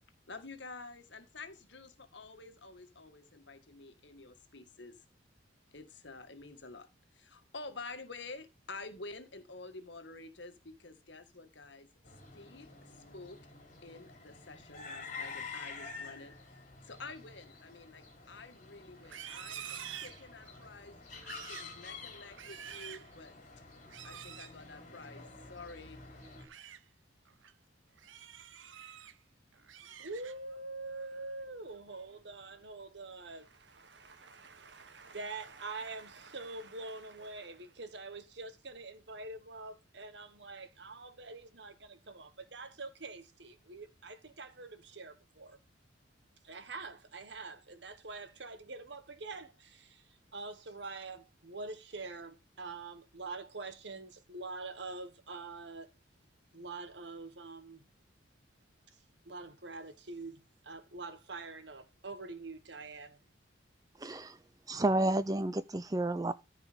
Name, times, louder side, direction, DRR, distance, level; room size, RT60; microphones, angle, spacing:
voice 1, 0.3-5.0 5.7-11.9 12.3-13.4 13.8-16.3 16.8-23.3 24.0-26.0, left 3 dB, 65° left, 1.8 m, -49 dB
sound 1, 12.0-26.4, left 4 dB, 40° left, 3.6 m, -49 dB
Livestock farm animals working animals, 19.0-20.7 21.1-21.7 22.2-23.1 23.9-24.5 26.2-26.8 27.3-27.5 28.0-29.1 29.5-30.6 31.0-31.3 31.7-32.1, right 9 dB, 80° right, 0.9 m, -48 dB
voice 2, 30.0-45.6 46.4-55.9 56.5-57.9 59.2-63.2, right 3 dB, 65° right, 1.5 m, -45 dB
voice 3, 64.0-64.4 64.7-66.3, right 2 dB, 20° right, 0.5 m, -31 dB
14.0 x 5.0 x 5.1 m
head